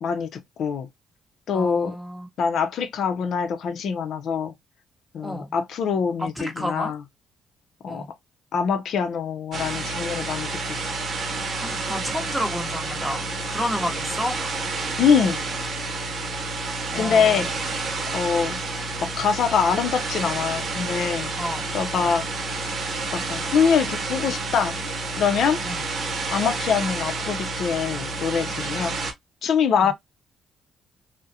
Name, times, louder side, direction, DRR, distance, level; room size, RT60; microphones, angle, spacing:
voice 1, 0.0-0.9 1.5-2.0 2.4-4.5 5.1-7.0 7.8-8.0 8.5-10.9 15.0-15.4 16.9-17.7 18.1-18.6 19.0-21.3 21.7-22.3 23.1-24.8 25.2-25.6 26.3-29.0 29.4-29.9, left 6 dB, 70° left, 0.5 m, -24 dB
voice 2, 1.5-2.3 5.2-5.5 6.2-6.9 7.9-8.1 11.5-14.6 16.9-17.5 21.4-21.6 21.9-22.1 25.6-25.8 29.8-29.9, equal, ahead, 0.9 m, -31 dB
sound 1, 9.5-29.1, right 3 dB, 55° right, 0.7 m, -29 dB
2.4 x 2.1 x 2.7 m
cardioid pair, 90°, 0 cm